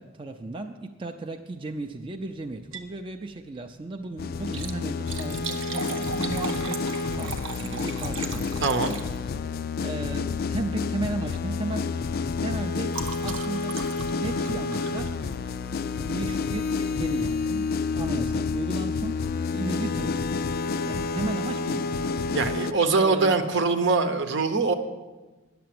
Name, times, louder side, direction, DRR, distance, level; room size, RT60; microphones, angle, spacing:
voice 1, 0.0-8.7 9.4-11.9 12.4-13.8 14.1-15.1 16.1-19.3 19.5-20.4 20.8-21.9 22.9-23.4, right 2 dB, 25° right, 4 dB, 0.5 m, -35 dB
Liquid, 2.5-3.0 3.3-3.4 4.3-9.5 10.5-10.7 11.1-11.3 11.6-15.7 16.6-16.9 17.4-17.5 17.7-17.8, right 5 dB, 90° right, 1.0 m, -38 dB
sound 1, 4.2-22.7, left 4 dB, 50° left, 0.3 m, -29 dB
voice 2, 8.6-9.0 22.3-24.7, right 4 dB, 65° right, 8 dB, 0.9 m, -23 dB
10.5 x 6.8 x 7.7 m, 1.2 s
head